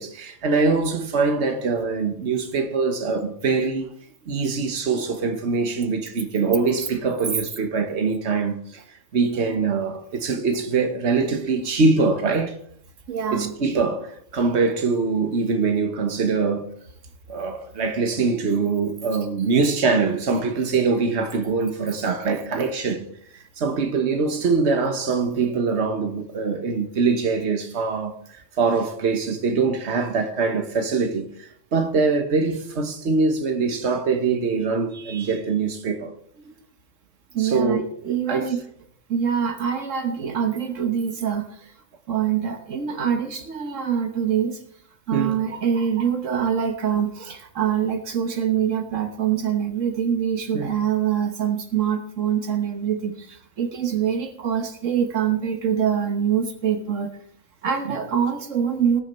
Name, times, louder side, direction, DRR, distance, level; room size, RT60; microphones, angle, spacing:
voice 1, 0.0-3.9 4.3-8.8 9.1-12.6 13.3-16.7 17.3-23.1 23.3-36.1 37.4-38.5 45.1-45.4 50.5-50.7 57.8-58.0, right 4 dB, 60° right, 1.6 m, -23 dB
voice 2, 13.1-13.5 36.4-36.5 37.3-38.6 39.1-41.7 42.1-44.6 45.1-57.1 57.6-59.0, right 8 dB, 80° right, 1.5 m, -24 dB
19.0 x 7.1 x 4.4 m
omnidirectional pair, 1.3 m